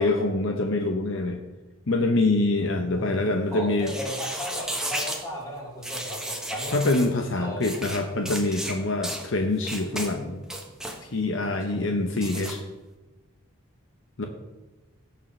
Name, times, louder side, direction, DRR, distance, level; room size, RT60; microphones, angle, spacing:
voice 1, 0.0-1.4 1.9-3.9 6.7-10.4 11.0-12.6 14.2-14.3, left 2 dB, 60° left, 4 dB, 0.8 m, -25 dB
voice 2, 2.6-3.1 3.5-6.8 7.3-7.6 11.7-11.9, equal, 15° left, -5 dB, 3.6 m, -36 dB
sound 1, 3.8-5.2 5.8-7.1 7.6-8.0 8.3-8.7 9.0-9.2 9.6-10.1 10.4-11.0 12.2-12.5, right 1 dB, 5° right, 1.1 m, -33 dB
17.0 x 6.7 x 3.2 m, 1.2 s
head